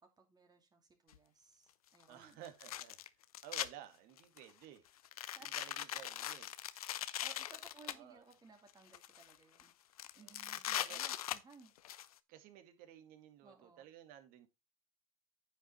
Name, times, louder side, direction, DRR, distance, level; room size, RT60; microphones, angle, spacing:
voice 1, 0.2-2.4 5.4-5.5 6.7-6.9 7.2-9.7 10.2-11.7 13.4-13.9, right 4 dB, 20° right, 2.4 m, -61 dB
sound 1, 1.1-1.2 2.4-3.7 4.2-4.5 5.0-7.9 8.7-9.3 9.6-9.7 10.0-12.1, left 12 dB, 80° left, 0.7 m, -40 dB
voice 2, 2.1-3.0 3.4-4.8 5.4-6.5 7.8-8.2 10.2-10.3 10.7-11.0 12.3-14.5, right 11 dB, 50° right, 2.2 m, -55 dB
10.0 x 5.7 x 4.3 m
hypercardioid pair, 95°, 19 cm